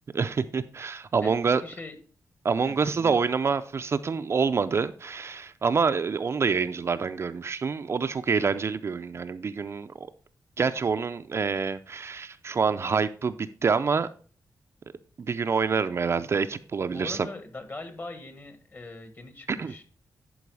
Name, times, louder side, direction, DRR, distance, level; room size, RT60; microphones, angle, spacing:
voice 1, 0.1-1.6 2.4-10.1 10.6-14.1 15.2-17.3 19.5-19.7, right 5 dB, 40° right, 0.4 m, -27 dB
voice 2, 1.2-2.0 2.6-3.2 16.9-19.8, left 2 dB, 30° left, 1.4 m, -41 dB
11.0 x 4.6 x 4.7 m
wide cardioid pair, 130°, 7 cm